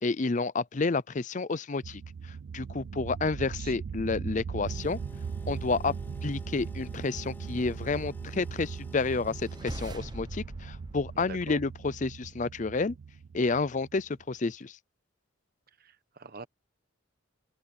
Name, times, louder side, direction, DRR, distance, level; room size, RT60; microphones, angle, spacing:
voice 1, 0.0-2.0 2.5-5.0 5.5-5.9 6.2-12.9 13.3-14.7, left 3 dB, 40° left, 0.5 m, -30 dB
sound 1, 1.8-14.2, right 6 dB, 80° right, 0.4 m, -40 dB
sound 2, 4.7-9.6, equal, 10° left, 3.2 m, -50 dB
sound 3, 9.3-12.1, right 1 dB, 20° right, 0.8 m, -42 dB
voice 2, 11.1-11.6 15.8-16.5, right 4 dB, 50° right, 1.2 m, -44 dB
head